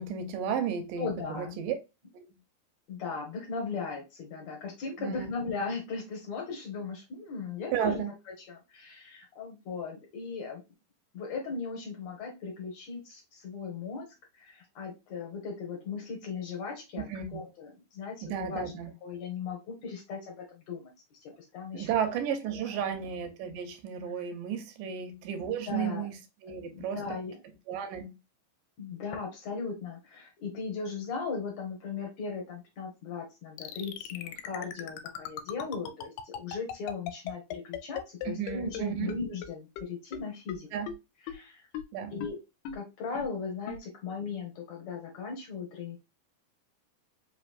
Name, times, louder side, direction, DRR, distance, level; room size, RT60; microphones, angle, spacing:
voice 1, 0.0-1.1 1.4-1.8 2.1-2.2 5.0-5.3 7.7-8.1 17.0-17.4 18.2-18.9 21.7-26.1 26.4-27.2 27.7-28.2 38.3-39.1 40.7-40.9 41.9-42.1, right 8 dB, 80° right, 2.2 m, -33 dB
voice 2, 1.0-1.6 2.9-8.0 8.4-10.6 11.1-14.1 14.3-17.1 17.3-18.7 19.0-20.9 21.5-21.9 22.5-22.9 25.7-26.1 26.7-27.4 28.8-40.7 41.3-41.6 42.1-42.4 42.7-46.0, left 5 dB, 65° left, 1.9 m, -37 dB
sound 1, 33.6-38.8 39.1-39.2 39.4-39.5 39.8-39.9 40.1-40.2 40.5-40.6 40.9-41.0 41.3-41.4 41.7-41.8 42.2-42.3 42.7-42.8 43.2-43.3 43.7-43.8, left 9 dB, 80° left, 2.2 m, -37 dB
5.2 x 3.0 x 2.4 m
omnidirectional pair, 4.0 m